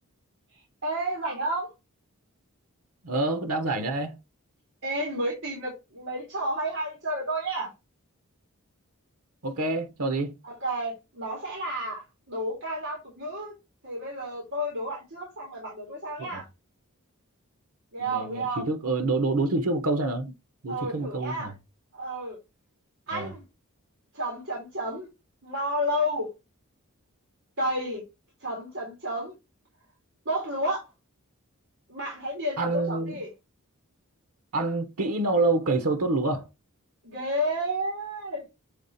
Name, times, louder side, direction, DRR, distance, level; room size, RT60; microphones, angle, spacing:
voice 1, 0.8-1.7 4.8-7.7 10.4-13.5 13.8-16.5 17.9-18.6 20.7-21.5 21.9-22.4 23.1-23.4 24.1-25.1 25.4-26.3 27.6-28.0 28.4-29.3 30.2-30.9 31.9-33.3 37.0-38.4, right 1 dB, 60° right, 2.7 m, -31 dB
voice 2, 3.0-4.2 9.4-10.3 16.2-16.4 18.0-20.3 20.6-21.5 23.1-23.3 32.6-33.2 34.5-36.5, right 2 dB, 85° right, 0.9 m, -27 dB
7.0 x 3.8 x 4.1 m
head